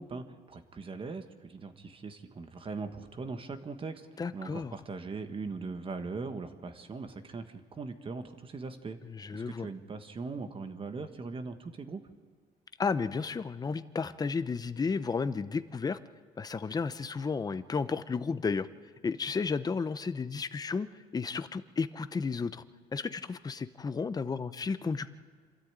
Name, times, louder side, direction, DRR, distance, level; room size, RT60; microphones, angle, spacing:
voice 1, 0.0-9.0 9.3-12.0, right 4 dB, 30° right, 7 dB, 1.5 m, -40 dB
voice 2, 4.2-4.7 9.1-9.7 12.8-16.0 16.4-18.7 19.0-20.9 21.1-22.6 22.9-25.1, left 5 dB, 25° left, 13 dB, 0.8 m, -33 dB
26.5 x 13.5 x 8.9 m, 1.5 s
cardioid pair, 110°, 17 cm